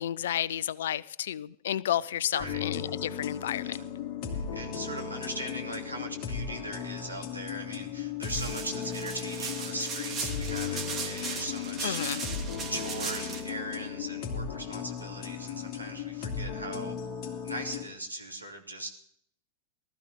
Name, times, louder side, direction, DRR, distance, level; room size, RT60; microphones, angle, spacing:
voice 1, 0.0-3.8 11.8-12.2, left 11 dB, 60° left, 0.5 m, -31 dB
voice 2, 2.3-2.6 3.6-3.8 4.3-12.3 12.7-16.9 17.4-18.9, right 1 dB, 85° right, 2.8 m, -39 dB
sound 1, 2.4-17.8, left 7 dB, 40° left, 2.8 m, -36 dB
sound 2, 8.2-13.4, right 5 dB, 25° right, 3.0 m, -37 dB
19.5 x 13.5 x 3.7 m
figure-of-eight pair, 90°, 0 cm